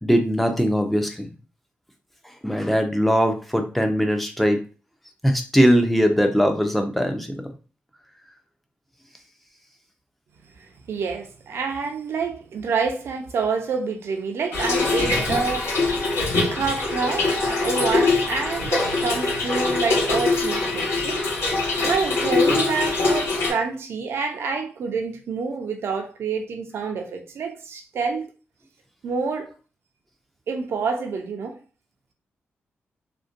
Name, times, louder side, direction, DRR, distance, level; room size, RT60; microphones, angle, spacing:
voice 1, 0.0-1.3 2.4-4.6 5.2-7.3 18.8-19.0, equal, ahead, 0.5 m, -20 dB
voice 2, 10.6-15.8 16.5-21.2 21.8-28.3 29.0-29.5 30.5-31.6, right 5 dB, 70° right, 0.5 m, -27 dB
Trickle dribble / Fill (with liquid), 14.5-23.5, left 3 dB, 70° left, 1.0 m, -23 dB
2.5 x 2.1 x 2.5 m
cardioid pair, 95°, 4 cm